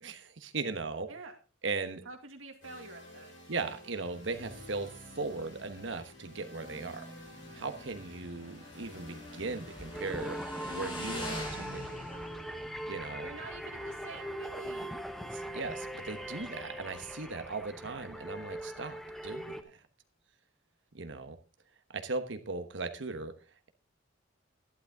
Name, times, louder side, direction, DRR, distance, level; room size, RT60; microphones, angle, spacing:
voice 1, 0.0-1.1 1.6-2.0 3.5-4.9 5.2-7.0 7.5-10.4 10.7-12.0 12.9-13.3 15.3-19.8 20.9-21.4 21.9-23.3, right 3 dB, 65° right, 9 dB, 1.2 m, -38 dB
voice 2, 2.1-3.3 13.2-15.1, right 3 dB, 85° right, 4 dB, 2.1 m, -47 dB
sound 1, 2.6-16.5, left 1 dB, 75° left, 6.3 m, -52 dB
Motorcycle / Engine, 7.2-16.4, left 1 dB, 25° left, 4.1 m, -45 dB
sound 2, 9.9-19.6, equal, ahead, 0.9 m, -41 dB
12.0 x 11.0 x 3.6 m, 0.34 s
head